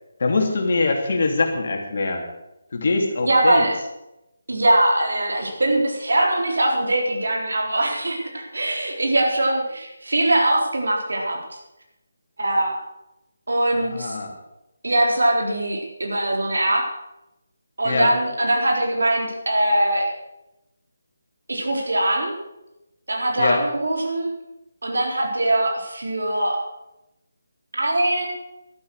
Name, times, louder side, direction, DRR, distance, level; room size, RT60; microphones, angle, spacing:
voice 1, 0.2-2.2 2.7-3.6 13.7-14.3 17.8-18.1 23.4-23.6, left 3 dB, 50° left, 3 dB, 2.8 m, -23 dB
voice 2, 3.2-3.7 4.5-11.4 12.4-12.8 13.5-14.2 14.8-16.8 17.8-20.1 21.5-22.4 23.1-24.3 24.8-26.6 27.7-28.3, right 1 dB, 65° right, 1 dB, 4.1 m, -21 dB
12.5 x 12.5 x 6.6 m, 0.91 s
figure-of-eight pair, 150°, 0 cm